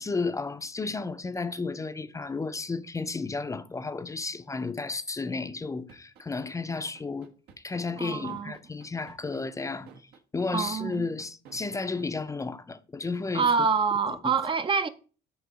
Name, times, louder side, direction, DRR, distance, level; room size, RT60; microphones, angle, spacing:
voice 1, 0.0-13.5 14.1-14.5, left 3 dB, 20° left, 0.5 m, -33 dB
sound 1, 5.9-12.0, right 5 dB, 75° right, 1.2 m, -52 dB
voice 2, 8.0-8.5 10.5-11.1 13.3-14.9, right 5 dB, 30° right, 0.5 m, -26 dB
7.8 x 2.9 x 6.2 m
cardioid pair, 110°, 17 cm